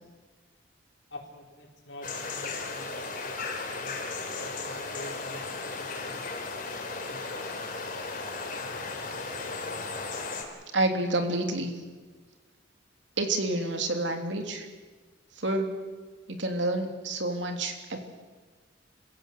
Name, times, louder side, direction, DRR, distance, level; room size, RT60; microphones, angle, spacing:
voice 1, 1.1-4.0 4.3-6.5 6.9-7.4, left 1 dB, 65° left, 1 dB, 4.6 m, -47 dB
sound 1, 2.0-10.4, left 3 dB, 45° left, 4.1 m, -35 dB
voice 2, 10.7-11.7 13.2-14.7 15.3-15.7 16.3-18.0, right 2 dB, 70° right, 4 dB, 3.3 m, -28 dB
28.0 x 16.0 x 8.0 m, 1.4 s
head